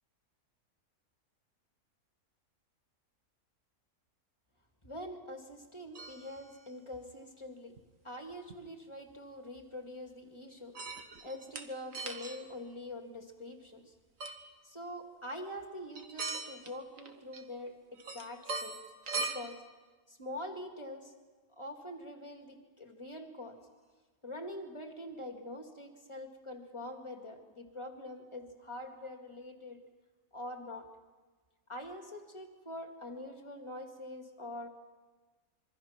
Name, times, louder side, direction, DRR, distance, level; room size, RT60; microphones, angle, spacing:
voice 1, 4.8-7.8 8.0-10.8 11.2-13.9 14.6-18.8 19.1-19.6 20.1-21.1 21.6-23.6 24.2-29.8 30.3-30.9 31.7-34.7, left 1 dB, 20° left, 3 dB, 2.3 m, -44 dB
sound 1, 6.0-6.5 7.8-7.9 8.5-8.6 10.8-11.7 11.9-12.5 14.2-14.4 16.0-16.7 17.0-17.7 18.0-19.3, right 3 dB, 60° right, 1.8 m, -39 dB
26.5 x 23.5 x 6.0 m, 1.3 s
omnidirectional pair, 1.6 m